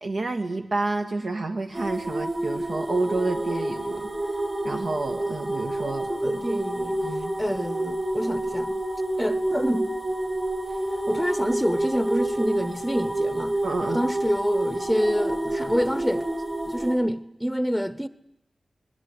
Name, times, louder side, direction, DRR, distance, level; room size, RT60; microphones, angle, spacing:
voice 1, 0.0-4.1 4.6-6.4 7.0-7.4 13.6-14.0, right 2 dB, 75° right, 1.8 m, -29 dB
sound 1, 1.7-16.9, right 1 dB, 35° right, 6.4 m, -29 dB
voice 2, 5.8-8.8 9.2-10.0 11.1-16.3 16.7-18.1, equal, ahead, 1.0 m, -27 dB
27.0 x 21.0 x 9.8 m
wide cardioid pair, 85°, 0 cm